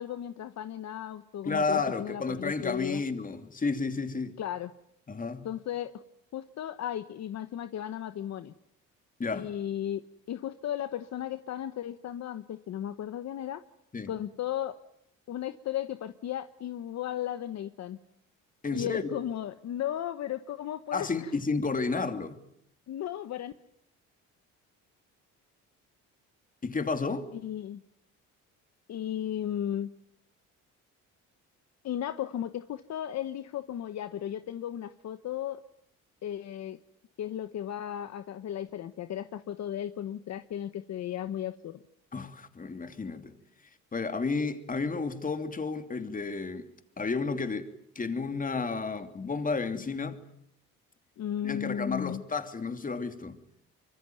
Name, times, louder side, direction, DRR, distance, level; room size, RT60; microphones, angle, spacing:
voice 1, 0.0-3.0 4.4-4.7 5.4-6.0 6.3-8.5 9.3-10.0 10.3-13.6 14.1-14.8 15.3-18.0 18.7-21.3 22.9-23.5 27.3-27.8 28.9-29.9 31.8-35.6 36.2-36.8 37.2-41.8 51.2-52.2, left 11 dB, 55° left, 1.1 m, -35 dB
voice 2, 1.4-4.4 5.1-5.5 9.2-9.5 13.9-14.1 18.6-19.0 20.9-22.4 26.6-27.3 42.1-43.3 43.9-46.7 47.0-50.2 51.4-53.4, left 4 dB, 25° left, 2.9 m, -32 dB
25.0 x 24.5 x 9.3 m
cardioid pair, 100°, 31 cm